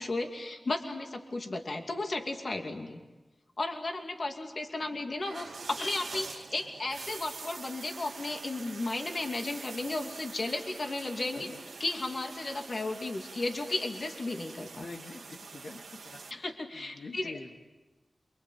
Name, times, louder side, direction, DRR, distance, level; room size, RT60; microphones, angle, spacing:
voice 1, 0.0-3.0 3.6-11.5 11.8-14.8 16.3-17.3, left 2 dB, 60° left, 4 dB, 2.6 m, -34 dB
sound 1, 5.2-16.3, right 4 dB, 85° right, 1.8 m, -45 dB
voice 2, 14.8-16.2 16.7-17.6, left 3 dB, 85° left, 1 dB, 2.7 m, -46 dB
28.0 x 24.0 x 8.7 m, 1.1 s
cardioid pair, 50°, 0 cm